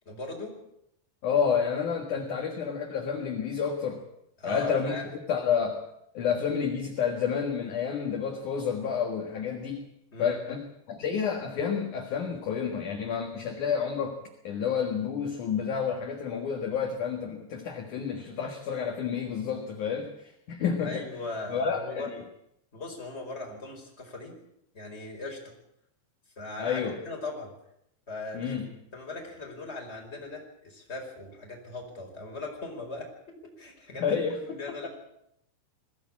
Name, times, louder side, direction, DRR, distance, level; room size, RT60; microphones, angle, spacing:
voice 1, 0.0-0.5 4.4-5.1 10.1-10.4 20.8-22.1 22.7-24.3 24.7-25.5 26.4-27.5 28.1-28.6 28.9-34.2 34.5-34.9, left 3 dB, 15° left, 1 dB, 4.4 m, -39 dB
voice 2, 1.2-4.0 4.4-5.8 6.1-9.8 10.2-14.2 14.4-21.0 21.5-22.2 26.6-27.0 28.3-28.7 34.0-34.9, left 6 dB, 55° left, 3 dB, 2.5 m, -30 dB
21.0 x 15.5 x 8.6 m, 0.78 s
omnidirectional pair, 5.4 m